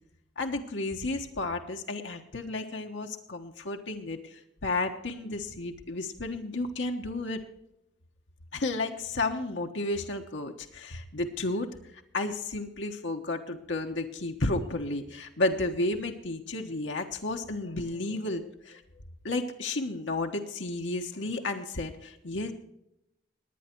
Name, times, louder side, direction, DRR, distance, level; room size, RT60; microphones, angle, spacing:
voice 1, 0.4-7.4 8.5-18.8 19.2-22.5, left 2 dB, 80° left, 3 dB, 1.3 m, -32 dB
20.0 x 9.5 x 4.6 m, 0.83 s
head